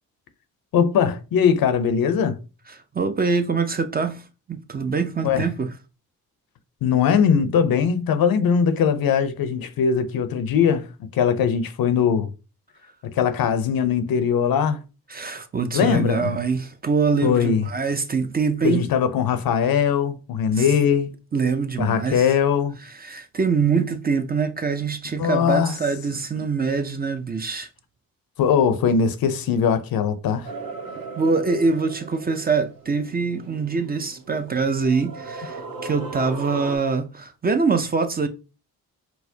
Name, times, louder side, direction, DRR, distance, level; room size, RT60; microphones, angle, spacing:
voice 1, 0.7-2.4 5.2-5.5 6.8-12.3 13.0-14.8 15.7-16.3 17.2-17.6 18.6-21.1 21.8-22.8 25.2-25.7 28.4-30.5, left 7 dB, 70° left, 0.6 m, -20 dB
voice 2, 2.7-5.7 15.1-18.9 20.6-20.7 21.3-22.3 22.8-27.7 31.2-38.3, right 4 dB, 25° right, 0.4 m, -24 dB
sound 1, 30.4-36.8, right 4 dB, 65° right, 0.8 m, -37 dB
4.5 x 2.0 x 2.7 m
supercardioid pair, 55°, 37 cm